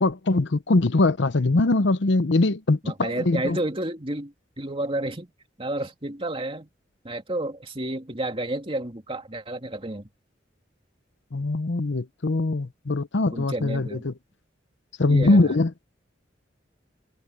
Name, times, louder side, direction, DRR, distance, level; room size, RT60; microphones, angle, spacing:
voice 1, 0.0-3.6 11.3-14.1 15.0-15.9, left 2 dB, 65° left, 0.7 m, -22 dB
voice 2, 2.8-5.3 5.6-6.7 7.0-10.1 13.3-14.0 15.0-15.6, right 1 dB, 30° right, 2.6 m, -31 dB
head